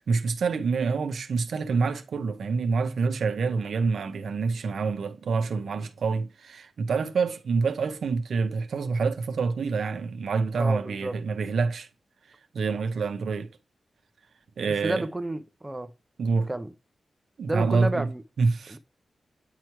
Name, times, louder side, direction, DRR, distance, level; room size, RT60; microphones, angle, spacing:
voice 1, 0.0-11.9 12.5-13.5 14.6-15.1 16.2-16.5 17.4-18.1 18.4-18.8, right 4 dB, 85° right, 0.7 m, -27 dB
voice 2, 10.5-11.2 14.7-15.9 16.5-16.7 17.5-18.2 18.7-18.8, right 1 dB, 15° right, 0.6 m, -31 dB
9.1 x 3.1 x 4.6 m
wide cardioid pair, 90°, 0 cm